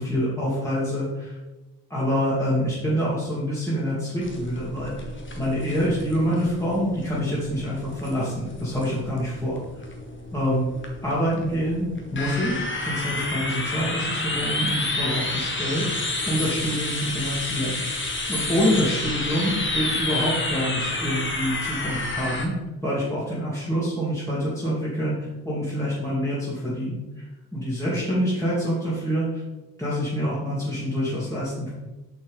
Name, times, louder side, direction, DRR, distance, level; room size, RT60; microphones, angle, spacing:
voice 1, 0.0-1.4 1.9-5.0 5.4-9.6 10.3-10.7 11.0-11.9 12.1-15.9 16.3-17.8 18.3-22.5 22.8-25.2 25.4-27.2 27.5-29.4 29.8-31.7, equal, 5° left, -8 dB, 2.3 m, -26 dB
sound 1, 4.2-22.5, left 2 dB, 25° left, 1.4 m, -30 dB
6.5 x 5.5 x 3.7 m, 1.1 s
hypercardioid pair, 40°, 45 cm